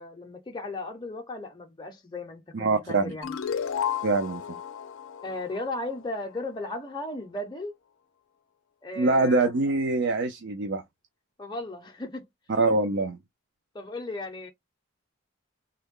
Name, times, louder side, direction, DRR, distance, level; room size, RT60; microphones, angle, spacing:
voice 1, 0.0-3.4 5.2-7.7 8.8-9.5 11.4-12.3 13.7-14.5, left 2 dB, 20° left, 0.6 m, -36 dB
voice 2, 2.5-3.1 4.0-4.4 9.0-10.8 12.5-13.2, right 3 dB, 60° right, 0.5 m, -24 dB
sound 1, 3.2-6.4, left 8 dB, 70° left, 0.5 m, -33 dB
3.5 x 2.2 x 3.6 m
head